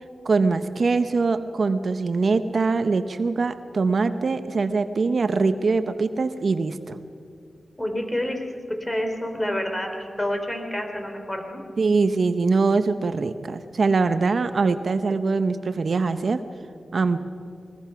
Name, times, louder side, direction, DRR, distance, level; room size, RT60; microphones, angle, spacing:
voice 1, 0.2-7.0 11.8-16.4 16.9-17.2, right 4 dB, 65° right, 10 dB, 0.9 m, -23 dB
voice 2, 7.8-8.5 8.9-11.6, left 1 dB, 20° left, 4 dB, 3.7 m, -28 dB
22.5 x 21.0 x 5.8 m, 2.3 s
cardioid pair, 65°, 0 cm